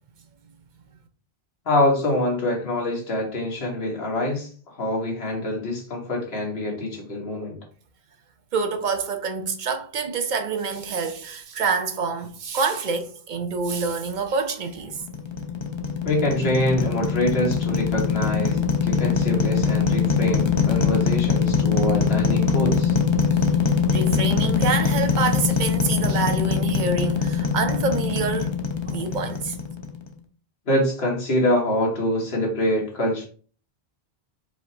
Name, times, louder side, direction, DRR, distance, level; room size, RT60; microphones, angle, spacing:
voice 1, 1.7-7.6 16.0-23.0 30.7-33.3, left 1 dB, 70° left, 1.6 m, -25 dB
voice 2, 8.5-15.0 23.9-28.5 28.9-29.6, right 4 dB, 55° right, 0.6 m, -26 dB
sound 1, 14.9-30.1, left 6 dB, 35° left, 0.5 m, -23 dB
4.8 x 2.1 x 4.0 m
omnidirectional pair, 1.1 m